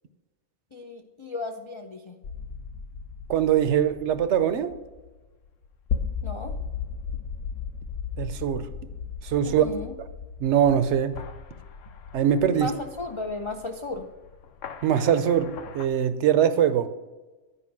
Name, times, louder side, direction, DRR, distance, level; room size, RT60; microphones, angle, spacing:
voice 1, 0.7-2.1 6.2-6.5 9.4-9.9 12.5-14.1, left 2 dB, 50° left, 2 dB, 0.3 m, -35 dB
sound 1, 2.2-15.9, left 6 dB, 70° left, 1.0 m, -37 dB
voice 2, 3.3-4.7 8.2-8.7 9.2-9.7 10.4-11.1 12.1-12.7 14.8-16.9, right 9 dB, 65° right, 12 dB, 0.8 m, -22 dB
9.9 x 5.0 x 5.9 m, 1.2 s
omnidirectional pair, 1.4 m